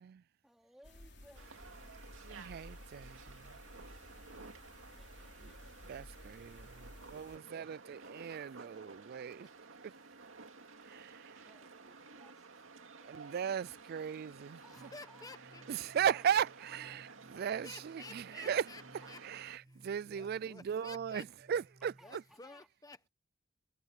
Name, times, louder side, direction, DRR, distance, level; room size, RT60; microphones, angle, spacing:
voice 1, 0.4-2.5 4.9-5.6 6.9-8.6 8.8-8.9 9.4-10.7 11.5-13.8 14.6-15.4 16.1-17.0 19.0-19.5 21.8-22.7, equal, ahead, 3.6 m, -65 dB
sound 1, 0.8-7.4, left 1 dB, 60° left, 3.3 m, -55 dB
sound 2, 1.3-19.6, right 4 dB, 85° right, 2.3 m, -54 dB
voice 2, 2.3-3.2 5.9-6.7 7.1-9.5 10.9-11.1 13.1-14.6 15.9-16.5 16.7-17.0 17.3-17.7 18.5-18.6 19.8-21.2 21.5-21.9, right 8 dB, 50° right, 0.3 m, -35 dB
voice 3, 14.6-15.6 17.3-19.2 19.6-21.3 22.0-23.1, left 3 dB, 20° left, 1.1 m, -53 dB
sound 3, 14.8-22.3, right 1 dB, 30° right, 1.1 m, -62 dB
head